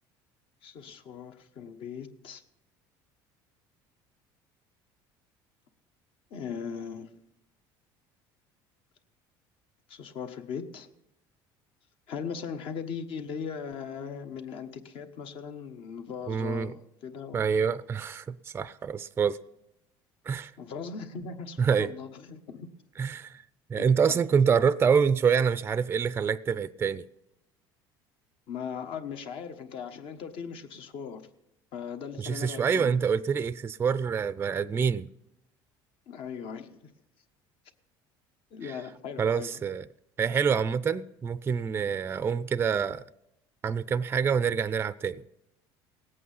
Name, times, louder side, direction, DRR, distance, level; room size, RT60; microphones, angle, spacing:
voice 1, 0.6-2.4 6.3-7.1 9.9-10.9 12.1-17.4 20.6-22.7 23.7-24.2 28.5-31.2 31.7-32.9 36.1-36.9 38.5-39.6, left 6 dB, 60° left, 1.2 m, -39 dB
voice 2, 16.3-16.7 17.3-19.4 20.3-20.5 21.6-21.9 23.0-23.4 23.7-27.0 32.2-35.1 38.6-38.8 39.2-39.9 40.2-43.0 43.6-45.2, right 6 dB, 25° right, 0.4 m, -26 dB
19.0 x 8.4 x 5.6 m
supercardioid pair, 110°, 10 cm